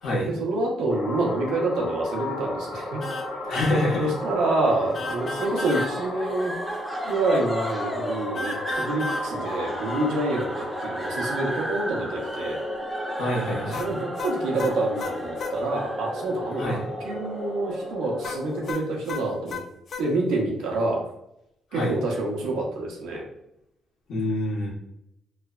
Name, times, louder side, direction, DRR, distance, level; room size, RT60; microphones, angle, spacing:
voice 1, 0.3-3.0 4.0-6.5 7.0-12.6 13.4-19.6 20.0-21.0 21.7-23.3, right 2 dB, 90° right, -1 dB, 0.7 m, -27 dB
sound 1, 0.9-18.7, left 1 dB, 30° left, 1.0 m, -34 dB
sound 2, 3.0-3.3 3.5-3.8 4.9-5.9 8.4-9.3 13.7-15.6 18.2-20.1, left 3 dB, 55° left, 0.4 m, -33 dB
voice 2, 3.5-4.1 13.1-13.9 16.6-16.8 21.7-22.0 24.1-24.7, left 1 dB, 70° left, -3 dB, 1.1 m, -26 dB
sound 3, 5.2-18.3, equal, 10° right, 0.6 m, -36 dB
3.1 x 2.1 x 2.3 m, 0.78 s
cardioid pair, 90°, 0 cm